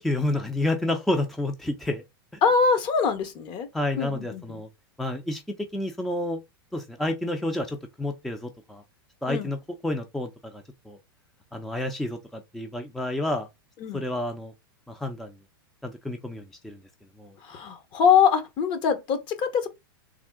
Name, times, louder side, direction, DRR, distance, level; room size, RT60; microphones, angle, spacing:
voice 1, 0.0-2.0 3.7-4.7 5.0-5.4 5.7-6.4 6.7-8.8 9.2-9.6 9.8-11.0 11.5-13.5 13.9-14.5 14.9-15.3 15.8-16.8 17.2-17.3, left 1 dB, ahead, 0.5 m, -29 dB
voice 2, 2.4-3.7 4.0-4.6 9.3-9.5 13.8-14.0 17.4-19.7, left 6 dB, 40° left, 1.0 m, -23 dB
3.5 x 2.3 x 3.5 m
hypercardioid pair, 110°, 12 cm